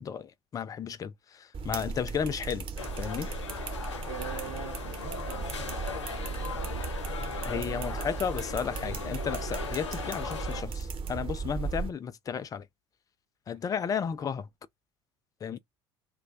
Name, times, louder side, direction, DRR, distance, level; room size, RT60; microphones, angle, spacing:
voice 1, 0.0-2.7 3.0-3.3 7.4-12.7 13.5-14.5 15.4-15.6, left 7 dB, 25° left, 0.4 m, -33 dB
sound 1, 1.5-11.9, right 5 dB, 35° right, 0.9 m, -36 dB
sound 2, 2.8-10.6, left 6 dB, 80° left, 0.5 m, -38 dB
voice 2, 4.0-7.9 8.5-8.6 8.9-9.2 15.5-15.6, right 11 dB, 60° right, 0.4 m, -45 dB
2.4 x 2.1 x 3.6 m
figure-of-eight pair, 65°, 15 cm